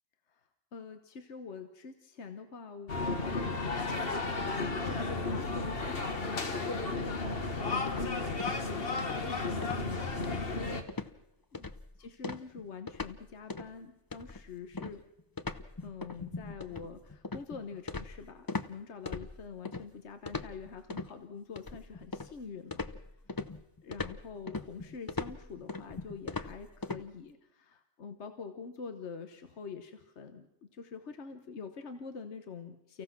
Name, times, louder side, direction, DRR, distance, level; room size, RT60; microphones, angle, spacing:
voice 1, 0.7-6.9 7.6-11.1 11.5-11.7 12.0-15.0 15.8-22.9 23.8-33.0, left 5 dB, 70° left, 8 dB, 1.4 m, -45 dB
sound 1, 2.9-10.8, left 3 dB, 55° left, 1.8 m, -33 dB
sound 2, 7.9-8.7 9.0-9.3 9.6-9.9 10.2-10.6 10.9-11.1 11.5-11.9 12.2-13.2 13.5-13.7 14.1-18.7 19.1-19.8 20.3-21.1 21.6-22.4 22.7-27.0, left 3 dB, 25° left, 0.6 m, -39 dB
29.5 x 15.5 x 6.0 m, 0.90 s
omnidirectional pair, 1.2 m